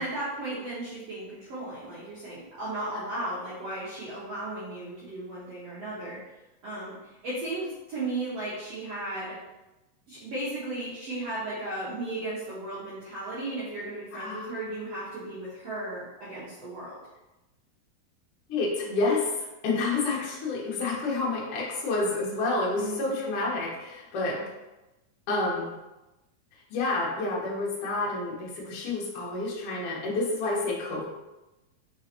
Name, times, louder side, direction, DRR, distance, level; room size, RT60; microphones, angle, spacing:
voice 1, 0.0-6.2 6.6-6.9 7.2-9.4 10.1-17.0 22.7-23.1 24.2-24.5, right 2 dB, 80° right, -9 dB, 1.4 m, -35 dB
voice 2, 14.1-14.5 18.5-19.3 19.6-24.4 25.3-25.7 26.7-31.0, left 3 dB, 70° left, -4 dB, 1.4 m, -29 dB
5.3 x 3.3 x 2.8 m, 1.0 s
omnidirectional pair, 4.2 m